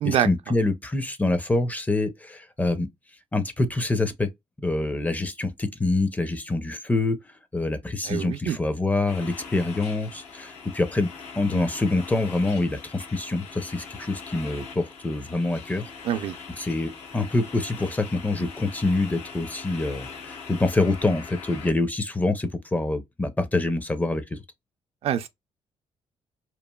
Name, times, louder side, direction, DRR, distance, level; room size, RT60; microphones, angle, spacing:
voice 1, 0.0-2.9 3.3-4.3 4.6-7.2 7.5-15.9 16.6-24.4, left 2 dB, 15° left, 0.5 m, -26 dB
voice 2, 8.0-8.6 16.0-16.4 25.0-25.3, right 10 dB, 60° right, 0.4 m, -25 dB
sound 1, 9.1-21.7, left 5 dB, 90° left, 0.9 m, -42 dB
3.0 x 2.4 x 2.2 m
cardioid pair, 110°, 11 cm